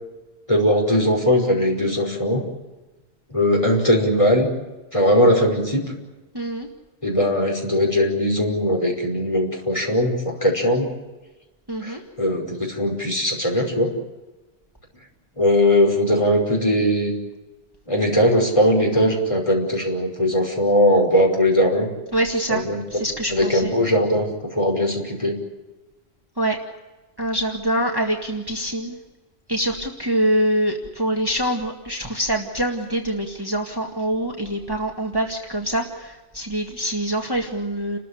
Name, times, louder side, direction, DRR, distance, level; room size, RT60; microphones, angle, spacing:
voice 1, 0.5-2.4 3.3-4.5 4.9-5.9 7.0-10.9 11.8-13.9 15.4-17.1 17.9-21.9 22.5-22.8 23.3-25.3, equal, 30° left, 0 dB, 5.5 m, -20 dB
voice 2, 6.3-6.7 11.7-12.0 22.1-22.6 22.9-23.7 26.4-26.6 27.2-29.0 29.5-38.0, right 1 dB, 20° right, 1 dB, 2.1 m, -24 dB
30.0 x 14.0 x 10.0 m, 1.1 s
omnidirectional pair, 1.1 m